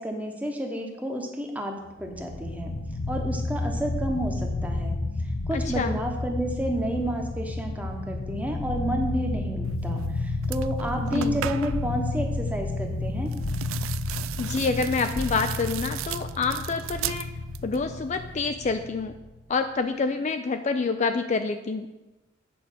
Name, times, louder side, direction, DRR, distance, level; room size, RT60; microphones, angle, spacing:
voice 1, 0.0-2.7 3.1-5.0 5.5-13.3, equal, 5° right, 3 dB, 1.0 m, -30 dB
sound 1, 2.0-19.4, left 2 dB, 80° left, 0.8 m, -31 dB
voice 2, 5.5-6.0 11.1-11.4 14.4-17.3 17.6-19.2 19.5-21.9, left 4 dB, 35° left, 8 dB, 0.4 m, -27 dB
sound 2, 10.0-10.1 10.4-11.9 13.3-17.8 18.1-18.7, right 12 dB, 85° right, 0.3 m, -37 dB
8.6 x 4.9 x 6.5 m, 1.0 s
head